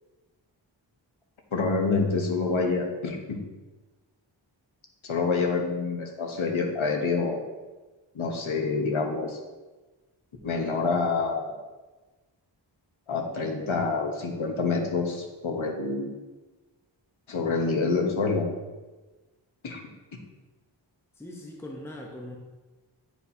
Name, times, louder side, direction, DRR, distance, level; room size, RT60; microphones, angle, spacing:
voice 1, 1.5-3.4 5.0-7.4 8.1-9.4 10.4-11.6 13.1-16.1 17.3-18.5 19.6-19.8, left 4 dB, 85° left, 2 dB, 1.1 m, -27 dB
voice 2, 21.2-22.4, left 1 dB, 5° left, -1 dB, 0.9 m, -40 dB
9.4 x 4.4 x 2.8 m, 1.2 s
wide cardioid pair, 65°, 46 cm